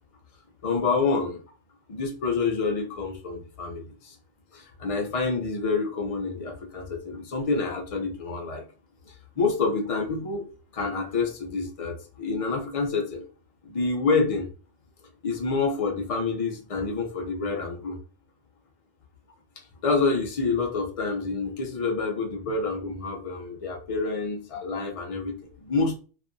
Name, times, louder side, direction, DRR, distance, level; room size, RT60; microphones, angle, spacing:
voice 1, 0.6-1.4 1.9-4.2 4.5-8.6 9.4-10.5 10.7-13.2 13.6-14.5 15.2-18.0 19.8-26.0, left 4 dB, 55° left, 1 dB, 0.4 m, -27 dB
2.6 x 2.3 x 2.5 m, 0.36 s
omnidirectional pair, 1.3 m